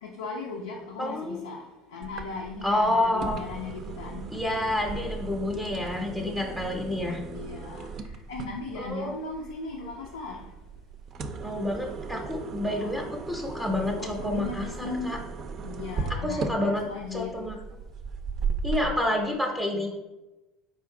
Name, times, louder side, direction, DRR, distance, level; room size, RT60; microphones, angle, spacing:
voice 1, 0.0-4.3 7.3-7.9 8.3-10.5 12.5-13.1 13.8-15.2 15.6-17.4, left 4 dB, 85° left, -2 dB, 0.5 m, -37 dB
voice 2, 1.0-1.4 2.6-3.4 4.3-7.2 8.8-9.1 11.4-15.2 16.1-17.6 18.6-19.9, left 1 dB, 10° right, 0 dB, 0.7 m, -29 dB
sound 1, 2.0-18.9, right 4 dB, 45° right, 0.4 m, -37 dB
4.3 x 2.5 x 3.8 m, 1.1 s
hypercardioid pair, 75°, 0 cm